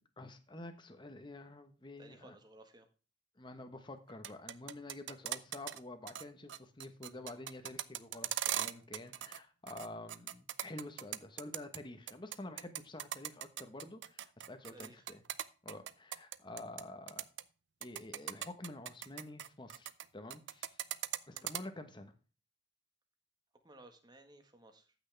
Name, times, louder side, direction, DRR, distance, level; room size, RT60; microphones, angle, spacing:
voice 1, 0.2-2.4 3.4-15.2 15.6-17.2 17.8-20.8 21.3-22.1, left 2 dB, 25° left, 7 dB, 1.1 m, -49 dB
voice 2, 2.0-2.9 14.7-15.1 21.3-21.5 23.6-24.9, right 2 dB, 20° right, 6 dB, 1.5 m, -58 dB
sound 1, 4.1-5.8 6.1-6.2 6.5-9.4 9.7-11.8 12.1-16.8 17.1-17.4 17.8-20.1 20.3-21.6, right 11 dB, 65° right, 0.6 m, -39 dB
14.0 x 6.2 x 3.4 m, 0.35 s
head